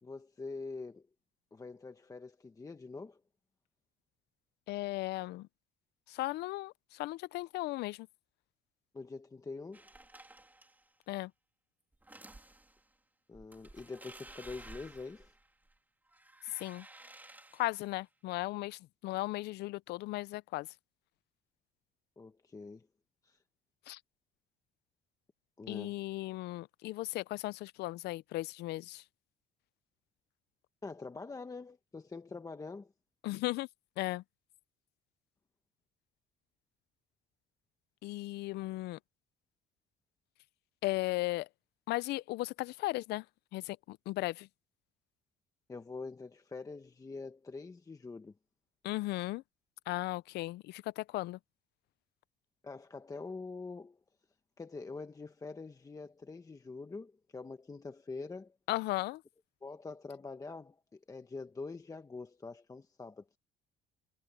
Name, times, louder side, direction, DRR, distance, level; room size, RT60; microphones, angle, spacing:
voice 1, 0.0-1.1 1.5-3.2 8.9-9.9 13.3-15.3 22.2-22.9 23.2-23.4 25.6-26.0 30.8-32.9 45.7-48.3 52.6-54.0 54.6-58.6 59.6-63.4, left 3 dB, 20° left, 1.2 m, -45 dB
voice 2, 4.7-5.5 6.1-8.1 11.1-11.3 16.6-16.9 17.5-20.7 23.9-24.0 25.7-29.0 33.2-33.7 34.0-34.2 38.0-39.0 40.8-41.5 41.9-43.2 43.5-44.5 48.8-49.4 49.9-51.4 58.7-59.2, left 19 dB, 75° left, 0.5 m, -36 dB
sound 1, 9.7-10.9 11.9-12.8 13.3-15.8 16.1-17.9, right 2 dB, 10° right, 3.3 m, -54 dB
cardioid pair, 110°, 17 cm